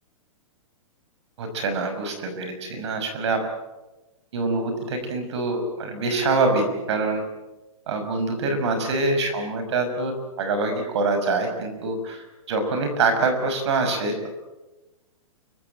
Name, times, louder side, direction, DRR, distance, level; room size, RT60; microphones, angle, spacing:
voice 1, 1.4-3.4 4.3-7.2 7.9-14.3, right 3 dB, 50° right, 7 dB, 5.7 m, -25 dB
29.0 x 16.5 x 9.0 m, 1.1 s
hypercardioid pair, 175°, 18 cm